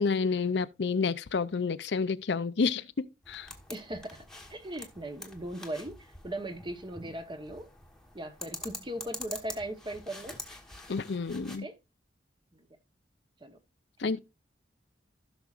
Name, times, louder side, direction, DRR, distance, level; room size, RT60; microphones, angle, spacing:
voice 1, 0.0-3.5 10.9-11.6 14.0-14.2, left 4 dB, 70° left, 0.5 m, -29 dB
sound 1, 3.2-11.6, left 2 dB, 5° left, 1.3 m, -46 dB
voice 2, 3.7-7.7 8.1-10.4 11.6-11.8 12.5-12.7 13.4-13.6 14.0-14.1, right 1 dB, 25° right, 1.1 m, -39 dB
16.0 x 6.0 x 2.5 m
head